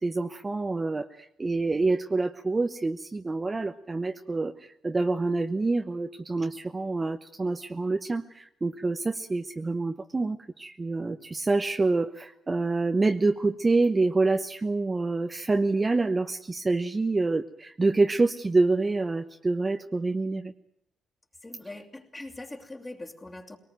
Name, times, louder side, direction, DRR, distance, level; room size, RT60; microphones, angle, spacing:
voice 1, 0.0-4.5 4.8-20.5, right 3 dB, 25° right, 7 dB, 0.9 m, -27 dB
voice 2, 21.4-23.6, left 2 dB, 20° left, 1 dB, 2.9 m, -42 dB
22.5 x 19.0 x 9.2 m, 0.75 s
cardioid pair, 90°, 0 cm